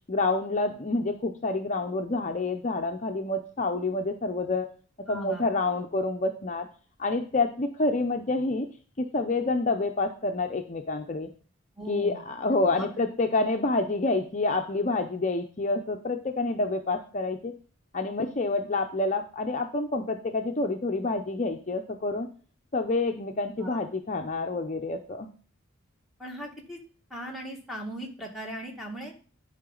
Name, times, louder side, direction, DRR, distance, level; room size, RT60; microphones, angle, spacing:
voice 1, 0.1-4.7 5.1-6.7 7.0-8.7 9.0-11.3 11.9-17.5 17.9-22.3 22.7-25.3, left 2 dB, 35° left, 5 dB, 0.6 m, -28 dB
voice 2, 5.1-5.4 11.8-12.2 12.6-12.9 23.6-23.8 26.2-26.8 27.1-29.1, equal, ahead, 0 dB, 1.8 m, -38 dB
10.5 x 4.9 x 3.8 m, 0.40 s
head